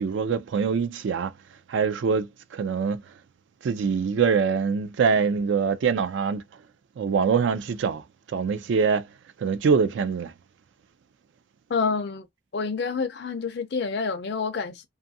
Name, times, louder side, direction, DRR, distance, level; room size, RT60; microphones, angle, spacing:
voice 1, 0.0-1.3 1.7-3.0 3.6-6.4 7.0-8.0 8.3-9.0 9.4-10.3, right 5 dB, 70° right, 0.3 m, -24 dB
voice 2, 11.7-12.3 12.5-14.9, left 5 dB, 55° left, 0.4 m, -28 dB
2.6 x 2.4 x 2.6 m
head